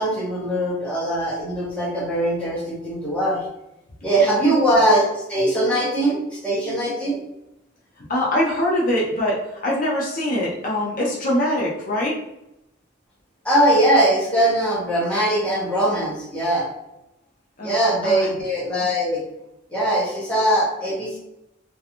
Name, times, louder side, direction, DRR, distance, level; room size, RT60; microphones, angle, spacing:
voice 1, 0.0-3.4 4.0-7.2 13.4-16.7 17.6-19.2 19.7-21.2, right 1 dB, 5° left, -7 dB, 0.7 m, -21 dB
voice 2, 8.0-12.2 17.6-17.7 18.0-18.3, left 1 dB, 45° left, -4 dB, 0.6 m, -23 dB
2.4 x 2.2 x 2.9 m, 0.88 s
head